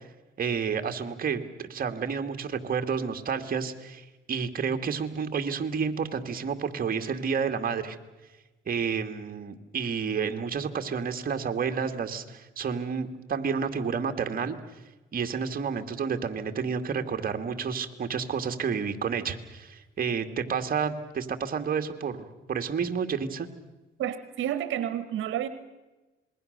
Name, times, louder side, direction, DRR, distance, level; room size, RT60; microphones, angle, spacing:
voice 1, 0.4-8.0 8.7-14.6 15.1-23.5, right 6 dB, 45° right, 6 dB, 2.1 m, -30 dB
voice 2, 24.0-25.5, right 11 dB, 80° right, 11 dB, 1.3 m, -30 dB
27.0 x 21.5 x 6.7 m, 1.1 s
cardioid pair, 90°, 20 cm